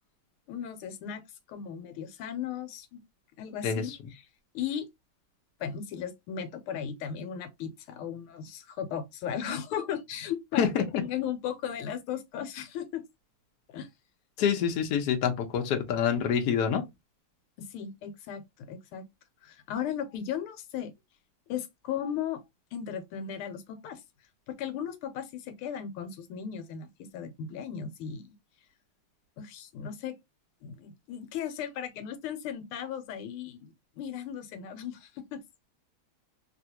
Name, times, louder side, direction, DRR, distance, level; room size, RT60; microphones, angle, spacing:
voice 1, 0.5-1.2 1.5-3.0 3.4-4.2 4.5-4.9 5.6-13.0 13.7-13.9 17.6-19.0 19.4-20.9 21.5-22.4 22.7-24.0 24.5-26.9 27.1-28.3 29.4-30.1 30.6-35.4, left 8 dB, 90° left, 1.5 m, -36 dB
voice 2, 3.6-4.0 10.6-11.0 14.4-16.8, left 7 dB, 65° left, 1.0 m, -26 dB
3.4 x 2.4 x 2.7 m
omnidirectional pair, 2.4 m